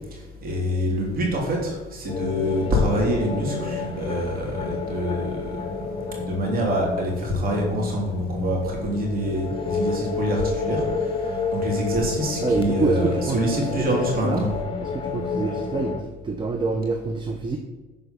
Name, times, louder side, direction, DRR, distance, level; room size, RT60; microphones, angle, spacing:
voice 1, 0.1-14.5, equal, 60° right, -1 dB, 3.4 m, -26 dB
sound 1, 2.1-16.0, left 4 dB, 30° left, 1.4 m, -30 dB
voice 2, 12.4-14.4 14.8-17.6, right 3 dB, 30° right, 5 dB, 0.9 m, -27 dB
9.5 x 5.0 x 6.9 m, 1.2 s
cardioid pair, 110°, 17 cm